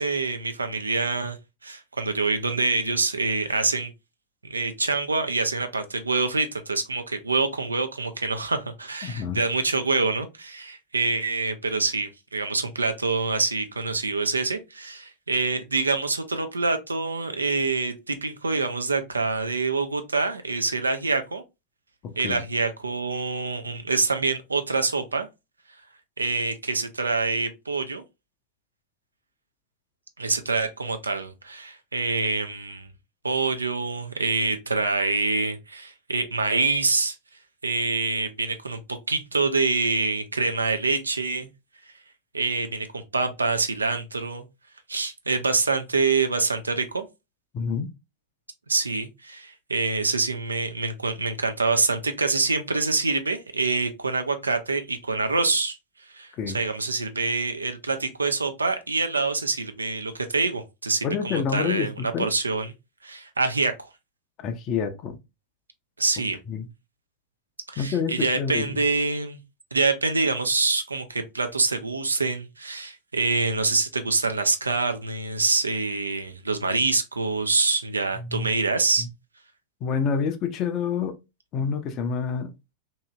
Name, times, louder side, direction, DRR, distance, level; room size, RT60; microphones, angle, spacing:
voice 1, 0.0-1.4 1.6-3.9 4.4-21.4 22.2-25.3 26.2-28.0 30.2-32.9 33.2-37.2 37.6-38.8 39.1-41.5 42.3-44.5 44.9-47.1 48.7-55.8 56.1-62.7 63.0-63.7 66.0-66.4 67.7-69.4 69.7-79.1, right 3 dB, 80° right, 0.4 m, -26 dB
voice 2, 9.0-9.4 22.0-22.4 47.5-47.9 56.4-56.6 61.0-62.3 64.4-65.2 66.5-66.7 67.8-68.8 78.2-78.5 79.0-79.1 79.8-81.2 81.5-82.5, left 6 dB, 35° left, 0.5 m, -28 dB
2.7 x 2.7 x 2.3 m
figure-of-eight pair, 90°, 0 cm